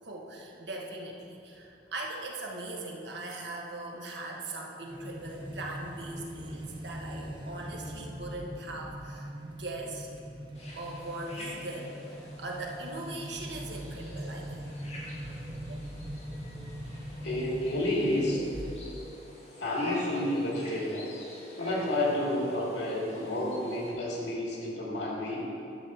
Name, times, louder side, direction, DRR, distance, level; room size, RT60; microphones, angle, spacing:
voice 1, 0.0-10.1 10.7-14.7 15.7-15.8, right 2 dB, 80° right, 0 dB, 1.3 m, -40 dB
sound 1, 4.9-19.1, equal, 30° right, 0.8 m, -41 dB
sound 2, 10.5-23.9, equal, 40° left, 2.0 m, -48 dB
voice 2, 17.2-18.4 19.6-21.1 21.6-25.4, left 1 dB, 90° left, -3 dB, 2.2 m, -30 dB
11.0 x 4.1 x 7.1 m, 2.7 s
head